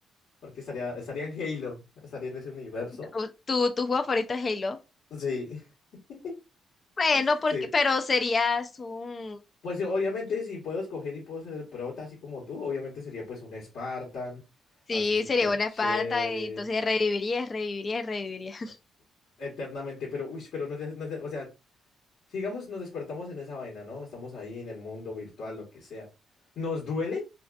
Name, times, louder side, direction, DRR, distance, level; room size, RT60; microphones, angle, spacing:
voice 1, 0.4-1.8 2.1-3.1 5.1-5.6 7.1-7.7 9.6-14.4 14.9-16.6 19.4-21.5 22.3-26.1 26.5-27.2, left 4 dB, 75° left, 1.2 m, -35 dB
voice 2, 3.1-4.8 7.0-9.4 14.9-18.7, left 3 dB, 35° left, 0.4 m, -27 dB
2.5 x 2.4 x 2.2 m
cardioid pair, 90°, 0 cm